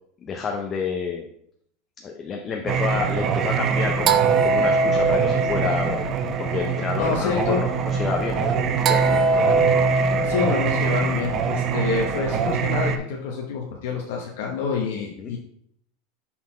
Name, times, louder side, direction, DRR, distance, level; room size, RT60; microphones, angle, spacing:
voice 1, 0.2-1.3 2.0-6.1 6.4-9.8 15.2-15.3, left 5 dB, 25° left, 2 dB, 0.6 m, -29 dB
Singing, 2.7-13.0, right 5 dB, 35° right, 0.5 m, -22 dB
voice 2, 7.0-7.6 10.2-15.4, left 5 dB, 80° left, -1 dB, 1.0 m, -27 dB
5.8 x 4.2 x 4.3 m, 0.69 s
supercardioid pair, 145°, 0 cm